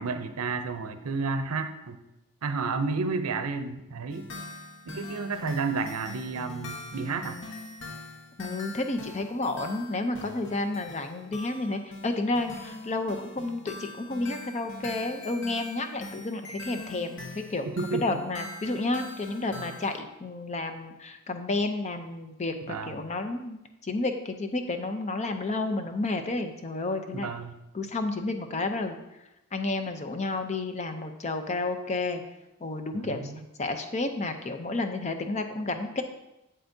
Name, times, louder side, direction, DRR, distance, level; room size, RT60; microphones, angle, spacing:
voice 1, 0.0-2.0 2.4-4.3 4.9-7.4 17.6-18.2 22.6-23.1 27.1-27.6 32.9-33.4, right 4 dB, 80° right, 9 dB, 0.6 m, -31 dB
sound 1, 4.1-20.0, left 2 dB, 60° left, 0.9 m, -43 dB
voice 2, 8.4-17.6 17.9-27.3 27.7-29.0 29.5-32.2 32.6-33.2 33.6-36.0, left 2 dB, 30° left, 7 dB, 0.6 m, -31 dB
7.9 x 7.7 x 2.7 m, 0.92 s
head